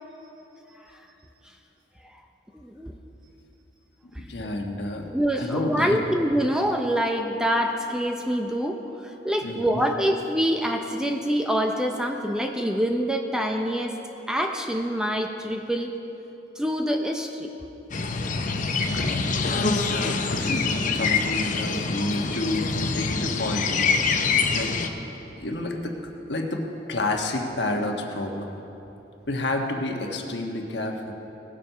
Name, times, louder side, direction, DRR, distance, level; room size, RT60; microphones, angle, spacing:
voice 1, 2.5-3.0 4.1-4.3 5.1-13.9 14.3-15.9 16.6-17.5, equal, 5° right, 3 dB, 0.6 m, -26 dB
voice 2, 4.2-5.1 5.4-6.0 9.4-9.8 14.9-15.1 18.1-19.1 19.4-24.7 25.4-26.0 26.3-28.5 29.3-31.1, left 1 dB, 65° left, 2 dB, 1.4 m, -30 dB
sound 1, 17.9-24.9, left 4 dB, 45° left, 0.7 m, -25 dB
19.0 x 7.5 x 5.7 m, 3.0 s
head